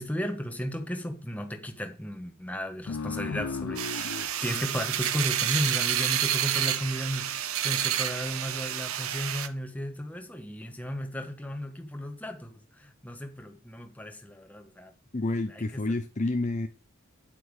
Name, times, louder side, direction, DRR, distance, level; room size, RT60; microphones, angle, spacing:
voice 1, 0.0-4.1 4.4-14.9 15.5-15.8, equal, 5° left, 1.4 m, -34 dB
sound 1, 2.9-6.0, left 4 dB, 75° left, 0.5 m, -37 dB
sound 2, 3.8-9.5, right 10 dB, 75° right, 0.9 m, -29 dB
voice 2, 15.1-16.7, left 2 dB, 35° left, 0.7 m, -29 dB
9.4 x 8.0 x 5.0 m
head